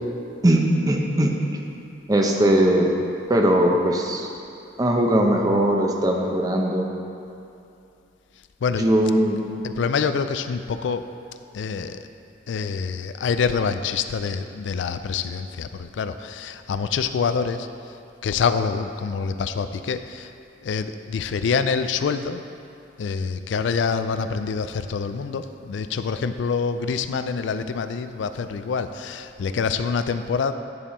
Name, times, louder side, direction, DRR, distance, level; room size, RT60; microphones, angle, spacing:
voice 1, 0.4-1.3 2.1-2.9 3.3-4.3 4.8-6.9 8.8-9.4, right 1 dB, 20° right, 1 dB, 0.7 m, -19 dB
voice 2, 9.6-11.0 11.5-12.0 12.5-17.7 18.2-20.3 20.6-22.4 23.0-30.5, left 5 dB, 85° left, 10 dB, 0.4 m, -26 dB
9.7 x 5.4 x 4.2 m, 2.6 s
head